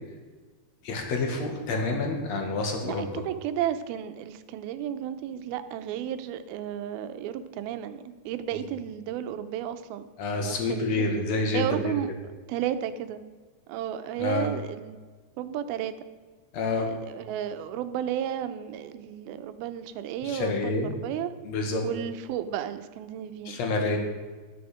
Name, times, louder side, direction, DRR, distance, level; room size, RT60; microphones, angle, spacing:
voice 1, 0.8-3.1 10.2-11.9 14.2-14.5 16.5-16.9 20.2-21.0 21.4-21.8 23.5-24.0, left 3 dB, 50° left, 3 dB, 2.5 m, -28 dB
voice 2, 2.8-10.1 10.4-11.1 11.5-12.1 12.5-13.2 13.7-15.0 15.4-15.9 16.9-21.3 21.8-23.6, right 10 dB, 80° right, 10 dB, 2.5 m, -33 dB
13.0 x 9.9 x 5.0 m, 1.4 s
omnidirectional pair, 4.4 m